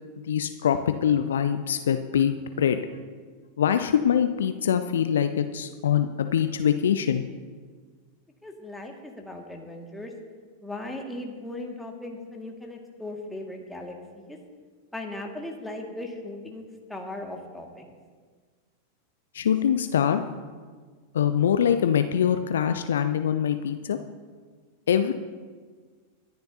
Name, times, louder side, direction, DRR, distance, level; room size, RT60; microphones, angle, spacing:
voice 1, 0.3-2.8 3.6-7.2 19.3-20.2 21.1-24.0 24.9-25.1, left 8 dB, 65° left, 9 dB, 0.6 m, -23 dB
voice 2, 8.4-10.1 10.6-14.4 14.9-16.6 16.9-18.0, left 1 dB, 5° left, 0 dB, 1.9 m, -38 dB
24.5 x 10.5 x 2.8 m, 1.5 s
figure-of-eight pair, 90°, 0 cm